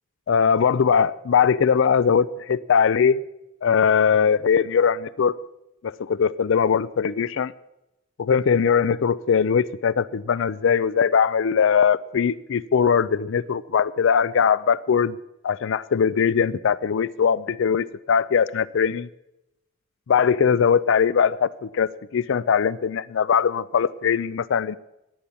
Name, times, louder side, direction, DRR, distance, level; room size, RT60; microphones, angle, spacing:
voice 1, 0.3-3.2 3.6-5.3 5.8-7.5 8.2-15.2 15.4-19.1 20.1-24.8, left 6 dB, 65° left, 19 dB, 0.4 m, -21 dB
15.0 x 10.0 x 7.1 m, 0.91 s
head